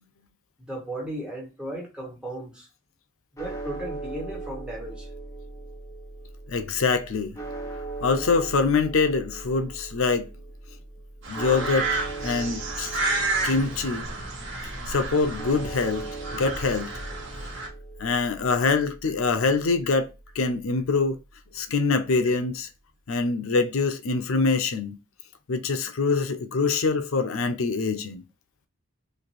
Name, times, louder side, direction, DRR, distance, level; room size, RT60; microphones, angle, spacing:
voice 1, 0.6-2.7 3.3-5.1, right 1 dB, 5° right, 1.5 m, -36 dB
sound 1, 3.4-21.6, right 2 dB, 15° left, 0.7 m, -39 dB
voice 2, 6.5-7.4 8.0-10.3 11.3-11.9 12.2-13.0 13.4-14.1 14.9-16.1 16.3-16.9 17.4-17.5 18.0-21.2 21.5-22.7 23.1-25.0 25.5-28.2, left 4 dB, 85° left, 0.5 m, -24 dB
sound 2, 11.2-17.7, right 3 dB, 60° right, 1.3 m, -31 dB
3.1 x 2.5 x 4.1 m
head